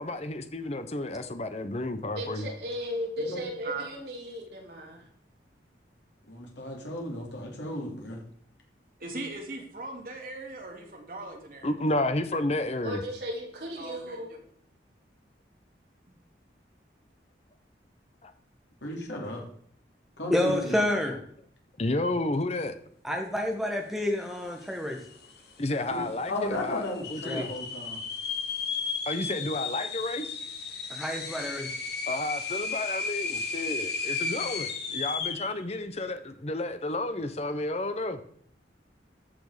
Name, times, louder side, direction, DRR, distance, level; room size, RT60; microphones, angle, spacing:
voice 1, 0.0-2.5 11.6-13.0 18.2-18.3 21.8-22.7 25.6-26.8 27.1-27.5 29.1-30.4 32.1-38.2, left 2 dB, 35° left, 9 dB, 0.9 m, -31 dB
voice 2, 2.2-5.0 12.8-14.3, equal, 65° right, -1 dB, 3.1 m, -36 dB
voice 3, 6.3-8.2 18.8-19.4 20.2-20.7 25.9-28.0, left 1 dB, 80° left, -1 dB, 3.2 m, -35 dB
voice 4, 9.0-11.8 13.8-14.4, right 3 dB, 50° right, 1 dB, 2.4 m, -39 dB
voice 5, 20.3-21.1 23.0-25.0 27.2-27.5 30.9-31.7, left 1 dB, ahead, 2 dB, 1.6 m, -28 dB
sound 1, 24.6-24.7 24.9-25.5 26.0-26.1 26.8-35.6, left 5 dB, 65° left, 1.8 m, -34 dB
13.5 x 6.1 x 5.0 m, 0.64 s
head